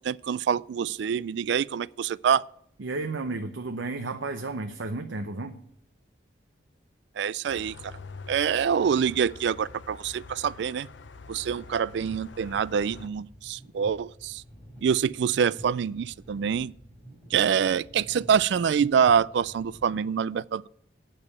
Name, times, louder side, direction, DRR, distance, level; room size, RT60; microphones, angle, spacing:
voice 1, 0.0-2.4 7.2-7.9 8.3-10.9 11.3-14.4 14.8-16.7 17.3-20.7, right 7 dB, 70° right, 0.3 m, -26 dB
voice 2, 2.8-5.6, right 3 dB, 85° right, 0.7 m, -33 dB
sound 1, 7.5-13.1, left 4 dB, 80° left, 0.7 m, -46 dB
sound 2, 11.9-19.9, equal, 10° left, 4.3 m, -49 dB
8.8 x 6.7 x 8.5 m
head